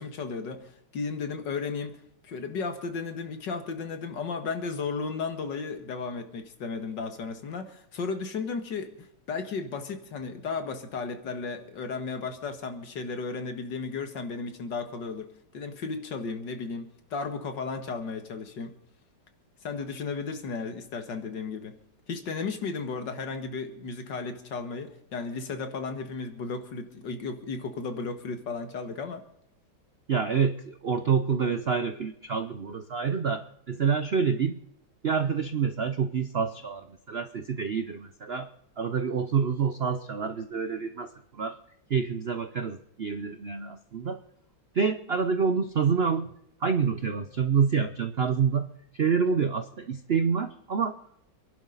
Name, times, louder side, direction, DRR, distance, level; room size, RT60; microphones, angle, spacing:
voice 1, 0.0-18.8 19.6-21.8 22.1-29.2, left 4 dB, 70° left, 2.3 m, -34 dB
voice 2, 30.1-34.6 35.0-38.5 38.8-41.6 41.9-44.2 44.7-46.3 46.6-48.7 48.9-51.0, right 6 dB, 60° right, 0.6 m, -27 dB
27.5 x 11.5 x 4.0 m
omnidirectional pair, 2.0 m